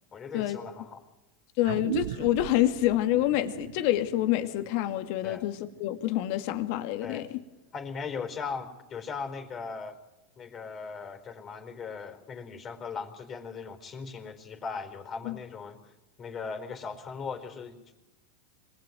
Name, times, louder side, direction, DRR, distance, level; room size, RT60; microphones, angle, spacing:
voice 1, 0.1-1.0 5.2-5.4 7.0-7.2 7.7-10.0 10.4-15.8 16.2-18.0, left 5 dB, 35° left, 7 dB, 4.3 m, -38 dB
voice 2, 1.6-7.3 15.2-15.4, left 15 dB, 60° left, 9 dB, 2.4 m, -27 dB
sound 1, 1.6-6.5, right 13 dB, 70° right, 1.0 m, -39 dB
26.0 x 20.0 x 9.4 m, 1.0 s
hypercardioid pair, 100°, 0 cm